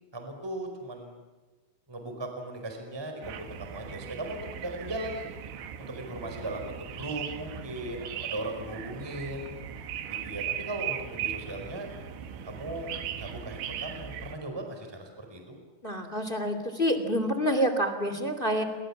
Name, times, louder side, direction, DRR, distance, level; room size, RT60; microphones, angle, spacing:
voice 1, 0.1-1.2 1.9-5.3 5.8-9.5 10.1-11.9 12.4-12.9 13.2-15.6, right 1 dB, 5° right, 4 dB, 4.5 m, -38 dB
sound 1, 3.2-14.4, right 9 dB, 75° right, 4.2 m, -38 dB
voice 2, 15.8-18.6, equal, 15° left, 8 dB, 1.8 m, -27 dB
30.0 x 25.5 x 7.3 m, 1.2 s
omnidirectional pair, 5.6 m